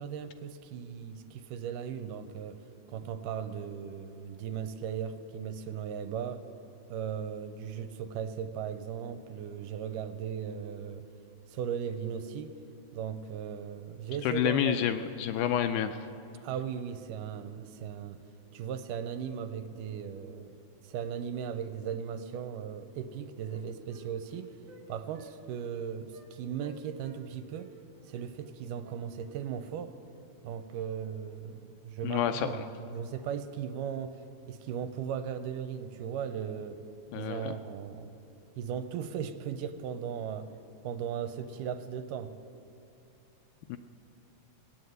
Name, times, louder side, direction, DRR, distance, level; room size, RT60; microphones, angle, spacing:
voice 1, 0.0-2.6 2.9-6.4 6.9-11.0 11.5-12.5 12.9-14.9 16.4-18.2 18.5-20.5 20.8-24.6 24.9-27.7 28.1-29.9 30.4-36.8 37.2-38.2 38.6-40.5 40.8-42.3, right 8 dB, 85° right, 10 dB, 2.2 m, -37 dB
voice 2, 14.2-16.0 32.0-32.5 37.1-37.5 43.7-43.8, left 10 dB, 80° left, 9 dB, 1.8 m, -29 dB
Wind instrument woodwind instrument, 22.6-22.8 23.1-24.8 25.1-25.3 25.6-25.7 26.1-26.3 26.6-27.2 27.5-29.4, right 2 dB, 60° right, 0.8 m, -55 dB
17.0 x 9.5 x 7.9 m, 2.7 s
omnidirectional pair, 3.8 m